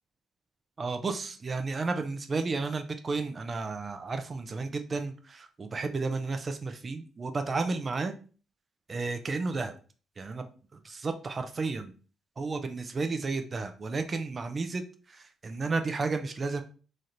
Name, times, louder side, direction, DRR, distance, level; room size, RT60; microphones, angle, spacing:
voice 1, 0.8-8.1 8.9-9.7 10.2-10.5 10.8-11.9 12.4-16.6, right 3 dB, 35° right, 7 dB, 0.5 m, -32 dB
3.2 x 2.5 x 4.1 m, 0.38 s
cardioid pair, 90°, 0 cm